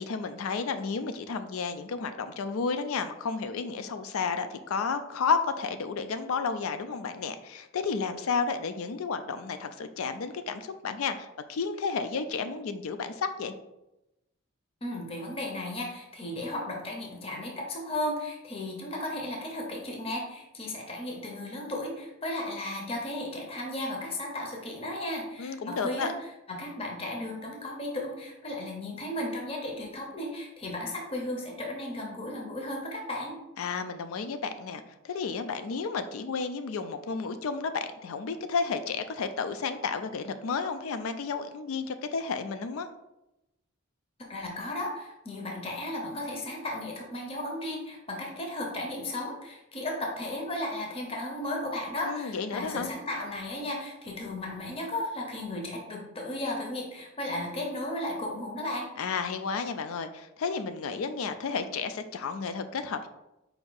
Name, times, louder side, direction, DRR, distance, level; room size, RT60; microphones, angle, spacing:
voice 1, 0.0-13.5 25.4-26.1 33.6-42.9 52.0-52.9 59.0-63.1, left 5 dB, 85° left, 9 dB, 0.4 m, -32 dB
voice 2, 14.8-26.1 26.5-33.4 44.3-58.9, left 1 dB, 25° left, 0 dB, 0.6 m, -35 dB
4.6 x 2.6 x 3.9 m, 0.92 s
head